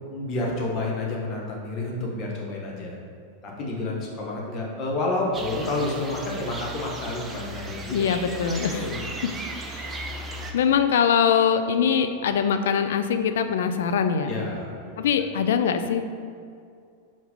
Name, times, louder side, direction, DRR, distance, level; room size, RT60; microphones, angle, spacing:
voice 1, 0.1-3.0 3.4-8.1 8.7-9.0 14.2-15.1, left 2 dB, 35° left, -3 dB, 1.3 m, -30 dB
sound 1, 5.3-10.5, right 2 dB, 15° right, 0.6 m, -36 dB
voice 2, 7.9-9.0 9.7-10.1 10.5-14.4 15.0-16.0, left 7 dB, 60° left, 8 dB, 0.4 m, -23 dB
4.8 x 4.0 x 5.2 m, 2.3 s
figure-of-eight pair, 90°, 0 cm